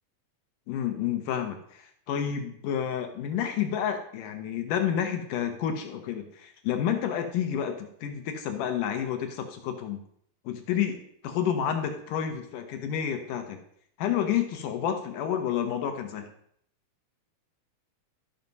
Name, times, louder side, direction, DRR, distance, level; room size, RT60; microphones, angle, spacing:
voice 1, 0.7-10.0 10.5-13.6 14.0-16.3, left 9 dB, 70° left, 6 dB, 2.2 m, -30 dB
13.0 x 5.9 x 5.4 m, 0.67 s
omnidirectional pair, 4.5 m